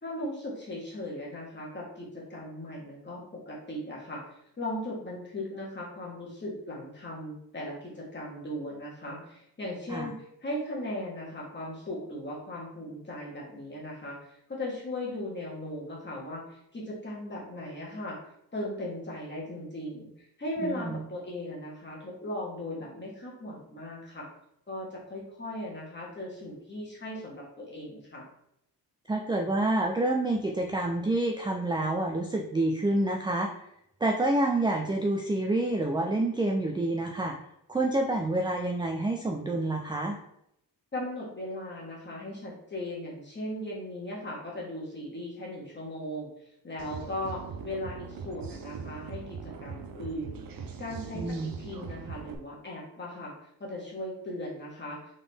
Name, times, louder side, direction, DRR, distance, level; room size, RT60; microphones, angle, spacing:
voice 1, 0.0-4.2 4.6-18.2 18.5-20.1 20.4-24.3 24.7-28.2 40.9-46.3 46.6-53.3 53.6-55.0, left 1 dB, 30° left, -4 dB, 1.6 m, -38 dB
voice 2, 20.6-21.0 29.1-33.5 34.0-37.4 37.7-40.2 51.1-51.5, right 2 dB, 10° right, 1 dB, 0.4 m, -28 dB
sound 1, 46.8-52.4, right 6 dB, 60° right, 0.6 m, -41 dB
4.0 x 3.7 x 3.5 m, 0.77 s
wide cardioid pair, 120°, 39 cm